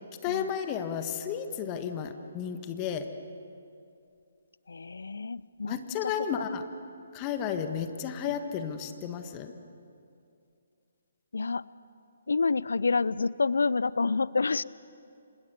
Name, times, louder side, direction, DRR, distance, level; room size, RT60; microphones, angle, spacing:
voice 1, 0.2-3.1 5.7-6.6 7.1-9.5, left 8 dB, 25° left, 8 dB, 1.6 m, -33 dB
voice 2, 4.7-5.8 6.0-6.1 6.4-6.5 11.3-11.7 12.3-14.6, left 4 dB, 65° left, 20 dB, 0.6 m, -28 dB
28.5 x 26.5 x 7.0 m, 2.5 s
figure-of-eight pair, 135°, 0 cm